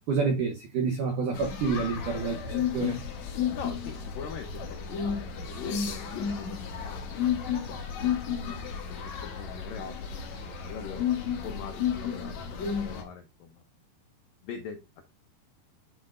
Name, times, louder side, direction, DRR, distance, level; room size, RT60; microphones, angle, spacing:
voice 1, 0.1-3.0, right 5 dB, 80° right, 1.8 m, -28 dB
sound 1, 1.3-13.0, left 7 dB, 60° left, 2.1 m, -32 dB
voice 2, 3.5-7.2 7.7-7.9 8.5-11.1 11.4-13.6 14.4-14.9, left 7 dB, 80° left, 2.0 m, -43 dB
12.0 x 4.7 x 2.4 m
omnidirectional pair, 5.0 m